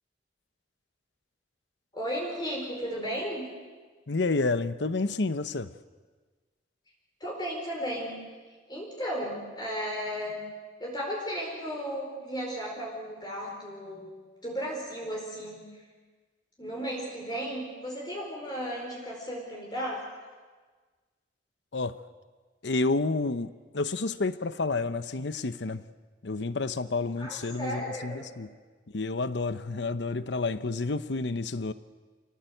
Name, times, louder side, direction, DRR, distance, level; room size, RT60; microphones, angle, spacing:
voice 1, 1.9-3.5 7.2-8.2 8.7-10.4 10.8-14.1 14.4-15.7 16.6-20.0 27.2-28.4, equal, 25° left, 4.4 m, -35 dB
voice 2, 4.1-5.7 21.7-22.0 22.6-25.9 26.2-28.5 28.9-31.7, left 3 dB, 75° left, 0.9 m, -30 dB
27.0 x 18.5 x 8.0 m
head